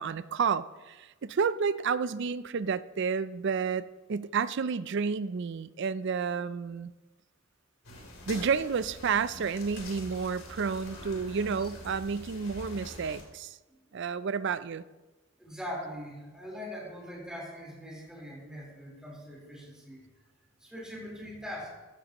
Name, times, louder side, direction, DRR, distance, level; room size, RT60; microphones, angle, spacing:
voice 1, 0.0-6.9 8.3-13.6 13.9-14.8, right 5 dB, 60° right, 15 dB, 0.4 m, -30 dB
sound 1, 7.8-13.2, left 1 dB, 75° left, 3.2 m, -45 dB
voice 2, 15.4-20.0 20.6-21.7, equal, 5° right, -4 dB, 4.1 m, -42 dB
15.0 x 12.5 x 3.0 m, 1.2 s
head